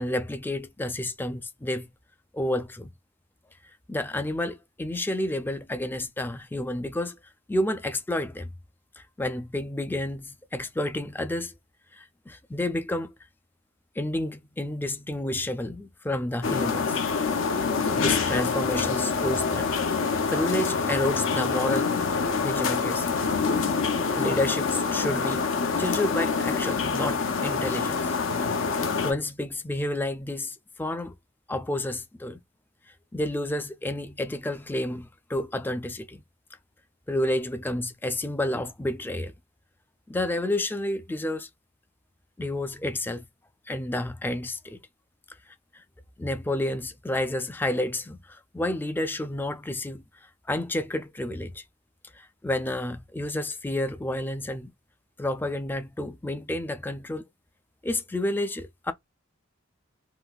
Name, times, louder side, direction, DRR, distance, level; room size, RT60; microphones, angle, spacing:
voice 1, 0.0-1.9 2.3-2.9 3.9-7.2 7.5-8.5 9.0-11.5 11.9-13.1 14.0-17.0 17.6-17.7 17.9-19.7 20.3-22.0 22.4-23.2 24.1-25.5 25.8-28.1 29.0-31.1 31.5-32.4 33.1-36.2 37.1-39.3 40.1-41.5 42.4-43.3 43.7-44.8 45.5-45.8 46.2-51.6 52.1-54.7 55.2-57.3 57.8-58.9, left 1 dB, 10° left, 0.3 m, -30 dB
sound 1, 16.4-29.1, left 5 dB, 70° left, 0.6 m, -26 dB
3.8 x 2.4 x 2.3 m
head